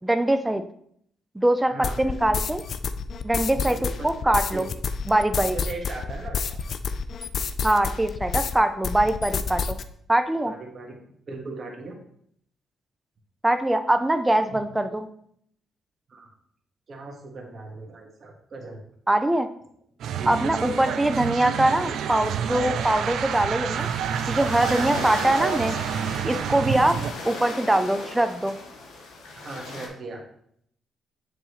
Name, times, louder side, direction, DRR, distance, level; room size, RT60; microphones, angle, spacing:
voice 1, 0.0-0.6 1.4-2.6 3.2-3.8 4.0-4.6 5.1-5.6 7.6-9.6 10.1-10.5 13.4-15.1 19.1-19.5 20.3-23.9 24.3-25.7 26.2-27.0 27.2-28.5, right 1 dB, 10° right, 9 dB, 0.5 m, -22 dB
voice 2, 1.7-2.2 3.5-4.1 4.5-4.7 5.5-6.6 9.0-9.3 10.4-11.0 11.3-11.9 14.5-14.7 16.1-16.4 16.9-18.8 20.1-20.3 24.6-24.9 29.4-30.2, right 3 dB, 50° right, 1 dB, 1.6 m, -38 dB
sound 1, 1.8-8.6 8.8-9.8, left 5 dB, 55° left, 0.4 m, -29 dB
sound 2, 20.0-27.1, right 8 dB, 75° right, 0.3 m, -28 dB
sound 3, 23.8-29.9, left 3 dB, 90° left, 1.3 m, -37 dB
7.4 x 4.9 x 3.1 m, 0.67 s
cardioid pair, 90°, 0 cm